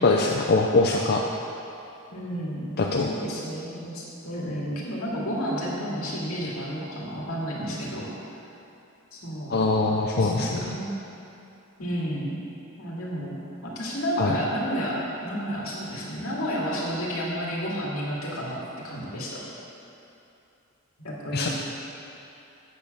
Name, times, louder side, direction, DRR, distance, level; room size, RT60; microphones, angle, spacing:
voice 1, 0.0-1.2 2.8-3.1 9.5-10.6 14.2-14.3 21.3-21.5, left 3 dB, 45° left, 0 dB, 0.5 m, -22 dB
voice 2, 2.1-2.8 3.1-8.1 9.1-9.5 10.1-10.9 11.8-12.3 12.8-13.3 13.6-15.0 15.2-19.4 21.0-21.5, equal, 70° left, -5 dB, 2.3 m, -31 dB
8.3 x 6.7 x 6.7 m, 2.8 s
head